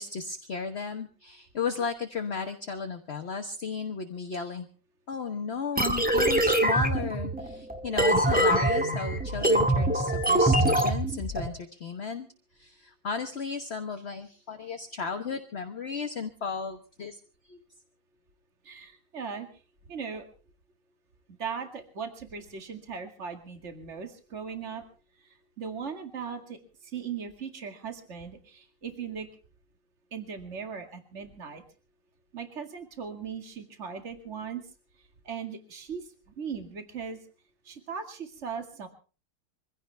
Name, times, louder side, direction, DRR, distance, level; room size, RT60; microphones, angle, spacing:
voice 1, 0.0-4.7 5.1-12.3 12.5-17.2 17.4-17.6, left 5 dB, 40° left, 5 dB, 1.1 m, -34 dB
sound 1, 5.8-11.5, right 1 dB, 5° right, 1.5 m, -24 dB
voice 2, 18.6-19.5 19.9-20.3 21.3-24.8 25.6-29.3 30.1-31.6 32.3-34.6 35.3-37.2 37.7-38.9, right 6 dB, 35° right, 6 dB, 2.2 m, -38 dB
23.5 x 16.0 x 3.4 m, 0.37 s
omnidirectional pair, 2.4 m